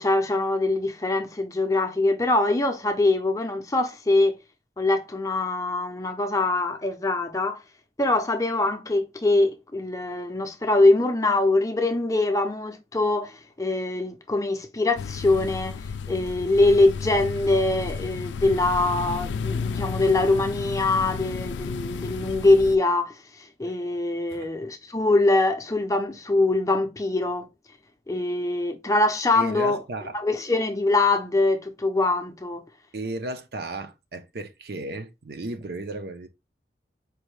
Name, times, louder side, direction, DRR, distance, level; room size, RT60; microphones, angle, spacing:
voice 1, 0.0-4.4 4.8-7.6 8.0-27.5 28.1-29.8 30.1-32.6, left 2 dB, 20° left, 0.5 m, -23 dB
sound 1, 15.0-22.8, left 5 dB, 85° left, 0.3 m, -32 dB
voice 2, 29.3-30.2 32.9-36.3, right 2 dB, 60° right, 0.6 m, -34 dB
4.7 x 2.7 x 3.1 m
head